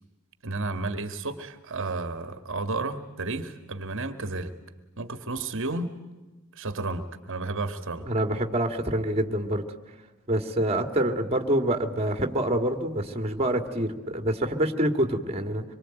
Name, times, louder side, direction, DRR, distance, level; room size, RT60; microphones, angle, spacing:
voice 1, 0.4-4.5 5.0-5.9 6.5-8.1, right 3 dB, 60° right, 9 dB, 1.7 m, -32 dB
voice 2, 8.1-9.6 10.3-15.6, right 1 dB, 30° right, 6 dB, 2.2 m, -26 dB
26.0 x 23.5 x 9.1 m, 1.2 s
head